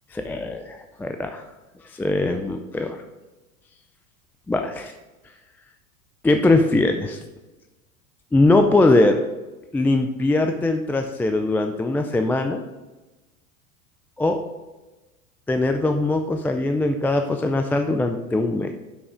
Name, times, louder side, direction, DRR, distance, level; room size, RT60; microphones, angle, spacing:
voice 1, 0.1-1.5 1.8-3.0 4.5-4.9 6.2-7.2 8.3-9.2 9.7-12.6 14.2-14.4 15.5-18.7, left 2 dB, 5° left, 6 dB, 0.4 m, -21 dB
11.0 x 6.2 x 4.9 m, 1.1 s
hypercardioid pair, 90°, 43 cm